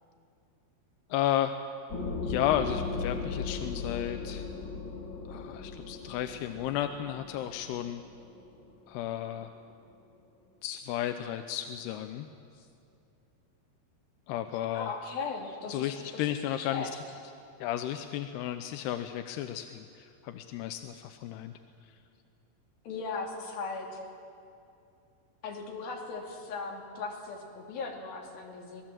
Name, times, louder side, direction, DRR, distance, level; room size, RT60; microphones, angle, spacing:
voice 1, 1.1-1.5 2.2-4.5 5.3-8.0 8.9-9.5 10.6-12.3 14.3-14.9 15.7-16.9 17.6-21.5, left 11 dB, 90° left, 7 dB, 2.8 m, -33 dB
sound 1, 1.9-9.3, left 4 dB, 35° left, 2.2 m, -37 dB
voice 2, 14.7-16.9 22.8-24.0 25.4-28.8, left 4 dB, 65° left, -1 dB, 4.4 m, -38 dB
26.0 x 19.0 x 7.5 m, 2.6 s
omnidirectional pair, 4.6 m